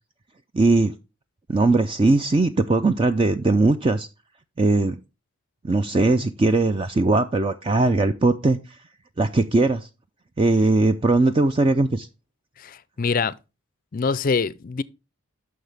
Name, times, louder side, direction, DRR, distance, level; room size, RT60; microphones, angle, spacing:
voice 1, 0.5-0.9 1.5-4.1 4.6-5.0 5.6-8.6 9.2-9.9 10.4-12.1, right 2 dB, 25° right, 0.4 m, -19 dB
voice 2, 12.6-13.3 13.9-14.8, left 5 dB, 40° left, 0.4 m, -24 dB
9.5 x 6.3 x 3.4 m
head